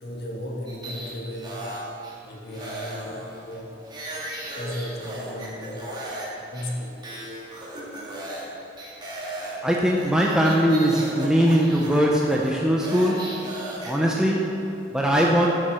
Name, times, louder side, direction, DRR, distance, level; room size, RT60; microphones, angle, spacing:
voice 1, 0.0-1.8 2.2-3.9 4.5-6.0 6.5-7.1, left 1 dB, 60° left, 0 dB, 1.9 m, -35 dB
sound 1, 0.7-2.1 2.5-6.3 6.5-6.7 7.0-8.5 8.8-13.9, right 1 dB, 25° right, 2.3 m, -36 dB
voice 2, 9.6-13.5 13.9-15.5, equal, 5° right, -2 dB, 0.8 m, -21 dB
12.5 x 7.1 x 6.3 m, 2.8 s
head